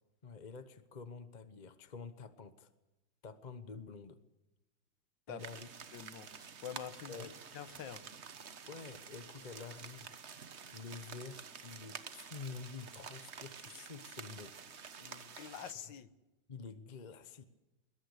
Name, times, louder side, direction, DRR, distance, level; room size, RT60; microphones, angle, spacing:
voice 1, 0.2-2.7 3.2-4.2 5.3-5.7 7.1-7.4 8.7-10.2 10.7-14.6 16.5-17.4, left 5 dB, 30° left, 12 dB, 0.9 m, -48 dB
sound 1, 5.4-15.7, right 6 dB, 40° right, 1.2 m, -50 dB
voice 2, 5.9-8.0 15.0-16.1, left 8 dB, 75° left, 14 dB, 1.8 m, -47 dB
22.0 x 21.5 x 8.3 m, 1.0 s
omnidirectional pair, 2.1 m